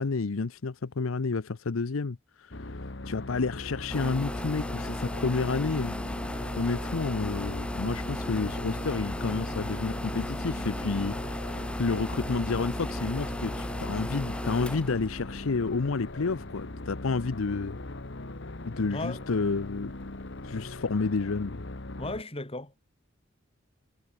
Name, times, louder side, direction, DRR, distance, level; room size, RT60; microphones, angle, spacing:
voice 1, 0.0-2.5 3.1-6.0 6.6-11.2 11.8-17.8 18.7-19.9 20.4-21.6, left 4 dB, 85° left, 0.7 m, -30 dB
sound 1, 2.5-22.2, left 2 dB, 60° left, 1.5 m, -40 dB
sound 2, 3.9-16.3, left 1 dB, 5° left, 0.5 m, -35 dB
voice 2, 18.9-19.3 22.0-22.8, left 2 dB, 30° left, 3.8 m, -36 dB
head